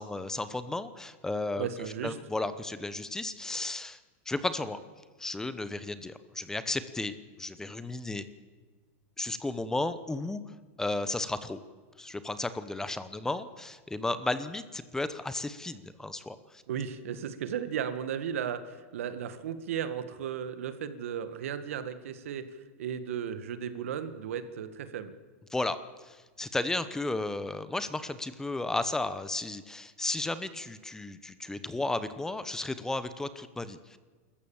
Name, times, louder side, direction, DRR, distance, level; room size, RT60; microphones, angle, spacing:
voice 1, 0.0-1.7 2.0-4.0 4.3-4.8 5.2-8.2 9.2-10.4 10.8-11.6 12.0-16.6 25.5-25.8 26.0-34.0, left 2 dB, 5° left, 13 dB, 0.9 m, -34 dB
voice 2, 1.6-2.2 16.7-22.5 22.8-25.1, right 8 dB, 80° right, 10 dB, 1.7 m, -35 dB
26.5 x 14.5 x 7.2 m, 1.4 s
supercardioid pair, 135°, 7 cm